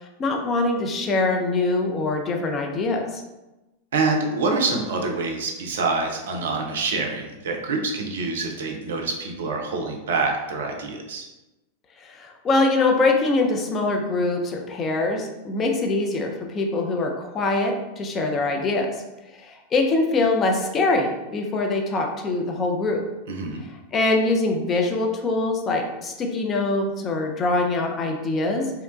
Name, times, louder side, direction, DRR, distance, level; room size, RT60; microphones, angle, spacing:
voice 1, 0.0-3.2 12.0-18.9 19.4-23.0 23.7-28.7, left 3 dB, 25° left, 3 dB, 0.4 m, -23 dB
voice 2, 3.9-11.3 23.3-23.6, right 3 dB, 60° right, 2 dB, 0.4 m, -26 dB
2.8 x 2.1 x 2.4 m, 1.0 s
figure-of-eight pair, 90°, 0 cm